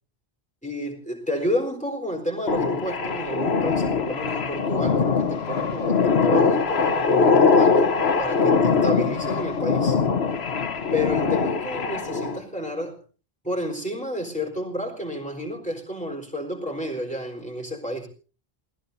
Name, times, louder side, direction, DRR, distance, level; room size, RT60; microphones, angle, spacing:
voice 1, 0.6-10.0 10.9-13.0 13.4-18.1, equal, 5° left, 1 dB, 4.2 m, -30 dB
sound 1, 2.5-12.4, left 5 dB, 90° left, 1.5 m, -22 dB
28.0 x 17.5 x 2.7 m, 0.37 s
omnidirectional pair, 1.0 m